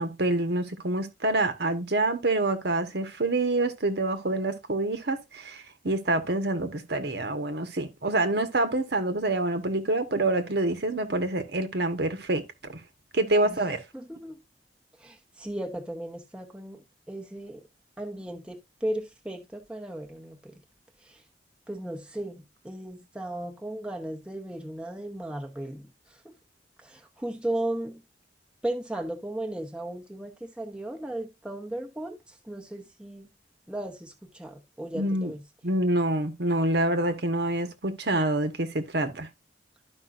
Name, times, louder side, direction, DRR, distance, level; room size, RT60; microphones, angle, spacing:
voice 1, 0.0-12.8 13.1-13.8 34.9-35.3 35.6-39.3, right 2 dB, 65° right, 1.2 m, -27 dB
voice 2, 13.9-14.4 15.0-16.8 17.1-17.6 18.0-20.6 21.0-21.2 21.7-26.4 26.8-28.0 28.6-33.3 33.7-35.4, right 1 dB, 5° right, 0.9 m, -36 dB
12.0 x 5.4 x 2.5 m
head